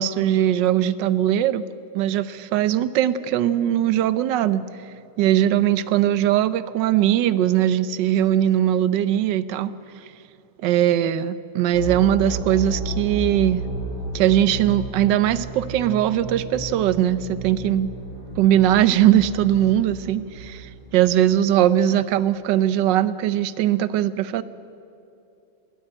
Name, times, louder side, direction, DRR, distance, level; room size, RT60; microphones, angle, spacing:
voice 1, 0.0-1.6 1.9-4.6 5.2-9.7 10.6-13.6 14.1-17.9 18.4-24.4, right 11 dB, 70° right, 15 dB, 1.2 m, -20 dB
sound 1, 11.7-21.6, right 1 dB, 70° left, 3.8 m, -33 dB
21.0 x 15.0 x 8.8 m, 2.8 s
omnidirectional pair, 2.3 m